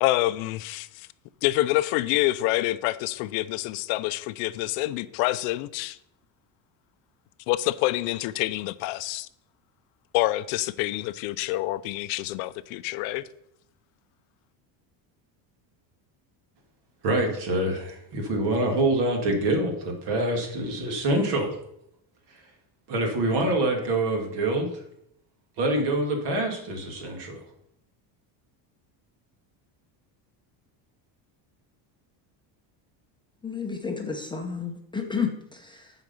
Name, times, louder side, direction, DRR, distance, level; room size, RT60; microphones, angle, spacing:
voice 1, 0.0-1.1 1.4-6.0 7.5-9.3 10.1-13.2, left 17 dB, 90° left, 0.6 m, -27 dB
voice 2, 17.0-21.6 22.3-22.5 22.9-24.8 25.6-27.4, right 1 dB, 55° right, 2.4 m, -26 dB
voice 3, 33.4-35.9, left 6 dB, 10° left, 0.7 m, -31 dB
7.9 x 5.1 x 7.0 m
cardioid pair, 145°, 48 cm